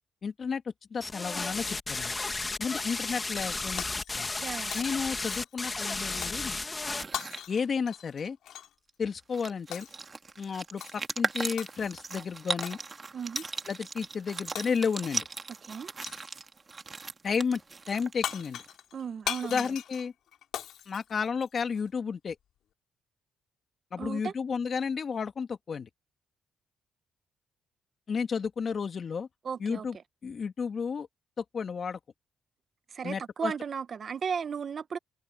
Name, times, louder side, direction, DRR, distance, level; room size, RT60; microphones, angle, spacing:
voice 1, 0.2-0.6 0.9-2.2 2.6-3.8 4.2-4.3 4.7-6.6 7.5-8.4 9.0-9.9 10.4-12.8 13.7-15.3 17.2-17.6 17.9-18.6 19.5-20.1 20.9-22.4 23.9-25.9 28.1-29.3 29.6-30.0 30.2-31.1 31.4-32.0 33.0-33.5, left 6 dB, 45° left, 2.2 m, -32 dB
sound 1, 1.0-7.0, left 3 dB, 25° left, 2.0 m, -33 dB
Shatter, 3.8-4.4 4.7-5.7 6.2-6.5 7.1-8.7 9.7-10.1 10.8-11.1 11.6-12.1 12.6-12.8 13.4-13.6 14.6-15.1 16.0-16.4 17.9-18.0 18.2-21.8, left 11 dB, 75° left, 2.7 m, -40 dB
voice 2, 4.4-4.8 13.1-13.4 15.6-16.0 18.9-19.7 24.0-24.3 29.4-29.9 32.9-35.0, right 6 dB, 50° right, 1.2 m, -35 dB
sound 2, 6.8-7.4 8.9-9.0 9.2-18.7, right 4 dB, 30° right, 1.9 m, -38 dB
cardioid pair, 90°, 0 cm